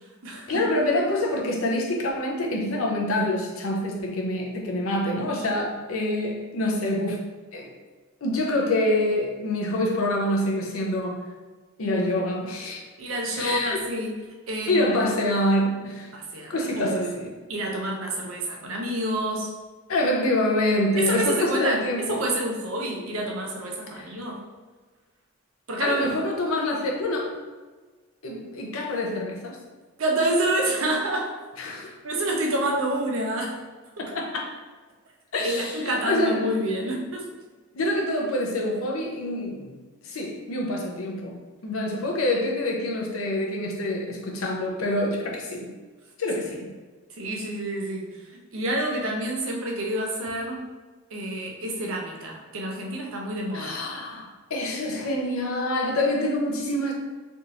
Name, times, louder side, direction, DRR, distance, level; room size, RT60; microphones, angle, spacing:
voice 1, 0.5-7.2 7.5-7.7 8.2-11.3 11.8-12.8 13.4-13.8 14.7-16.1 16.5-17.3 19.9-22.3 23.9-24.1 25.8-27.4 28.2-29.6 31.6-31.9 34.0-34.5 35.3-36.5 37.7-39.7 40.0-45.7 46.2-46.7 53.5-56.9, left 1 dB, 85° left, 0 dB, 0.6 m, -26 dB
voice 2, 13.0-14.1 14.5-14.9 16.1-17.1 17.5-19.5 21.0-21.8 22.1-24.4 25.7-26.1 30.0-31.4 32.0-33.6 34.0-34.1 35.4-37.3 47.1-48.1 48.5-50.6 51.1-53.7, right 1 dB, 80° right, 0 dB, 0.7 m, -28 dB
3.4 x 2.6 x 2.8 m, 1.3 s
head